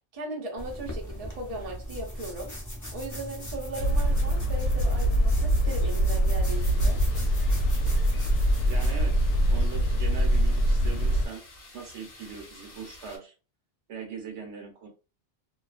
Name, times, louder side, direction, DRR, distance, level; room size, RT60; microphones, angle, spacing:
voice 1, 0.1-2.5 2.9-7.0, right 1 dB, 40° right, 0 dB, 0.6 m, -37 dB
sound 1, 0.6-9.8, equal, 20° left, 0.5 m, -38 dB
sound 2, 3.8-11.3, equal, 80° left, 0.9 m, -24 dB
sound 3, 6.5-13.2, left 2 dB, 40° left, 0.9 m, -50 dB
voice 2, 8.7-11.4 11.7-13.3 13.9-14.9, right 6 dB, 70° right, 2 dB, 1.0 m, -40 dB
2.4 x 2.3 x 2.4 m, 0.32 s
omnidirectional pair, 1.2 m